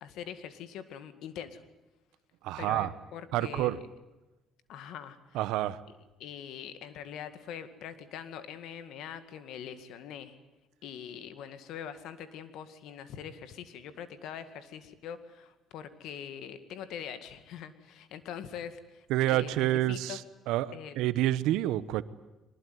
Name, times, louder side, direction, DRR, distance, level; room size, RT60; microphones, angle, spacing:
voice 1, 0.0-1.6 2.6-3.8 4.7-5.4 6.2-10.4 10.8-19.1 19.3-20.2 20.7-20.9, left 8 dB, 75° left, 11 dB, 2.1 m, -43 dB
voice 2, 2.4-2.9 3.3-3.8 5.3-5.8 19.1-20.2 20.5-22.0, right 14 dB, 85° right, 16 dB, 1.0 m, -28 dB
23.0 x 20.5 x 9.4 m, 1.0 s
cardioid pair, 100°, 0 cm